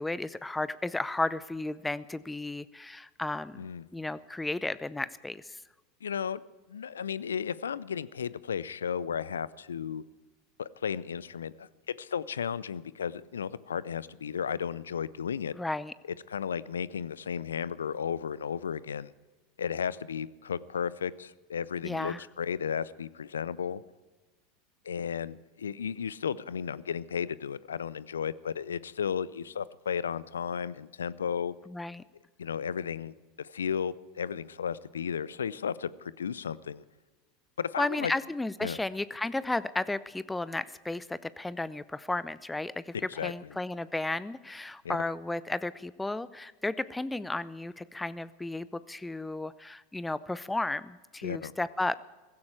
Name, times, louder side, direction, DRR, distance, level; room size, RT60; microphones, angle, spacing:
voice 1, 0.0-3.7 3.9-5.6 15.6-15.9 21.8-22.2 31.7-32.0 37.8-52.0, left 2 dB, 10° left, 17 dB, 0.6 m, -33 dB
voice 2, 6.0-6.4 6.7-10.0 10.6-15.5 16.3-19.1 19.6-23.8 24.9-31.5 32.4-36.8 37.6-38.1 38.6-38.8 43.1-43.3 44.8-45.0 51.2-51.5, left 7 dB, 80° left, 20 dB, 0.5 m, -34 dB
16.5 x 16.0 x 4.8 m, 1.2 s
figure-of-eight pair, 85°, 0 cm